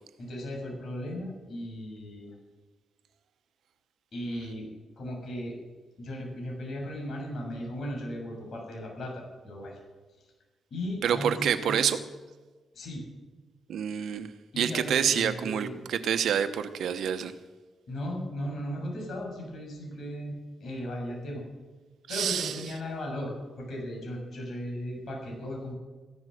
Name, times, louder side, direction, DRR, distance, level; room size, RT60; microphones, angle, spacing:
voice 1, 0.2-2.3 4.1-4.7 5.0-5.5 6.0-9.8 10.7-11.9 12.7-13.1 14.5-15.8 17.9-21.4 22.1-25.8, equal, 60° left, 6.7 m, -36 dB
voice 2, 11.0-12.0 13.7-14.3 14.6-17.3 22.1-22.6, right 8 dB, 80° right, 1.0 m, -27 dB
15.5 x 12.0 x 6.5 m
cardioid pair, 100°, 0 cm